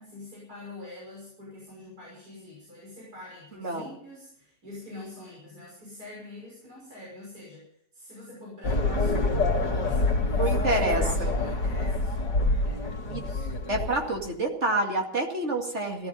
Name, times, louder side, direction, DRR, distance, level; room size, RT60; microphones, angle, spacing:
voice 1, 0.0-13.5 13.7-13.9, left 2 dB, 60° right, -5 dB, 6.7 m, -44 dB
voice 2, 3.6-3.9 10.4-11.3 13.1-13.3 13.7-16.1, right 2 dB, 40° right, 1 dB, 2.5 m, -28 dB
sound 1, 8.6-14.3, left 2 dB, 80° left, 2.7 m, -26 dB
17.5 x 13.5 x 5.5 m, 0.68 s
omnidirectional pair, 1.9 m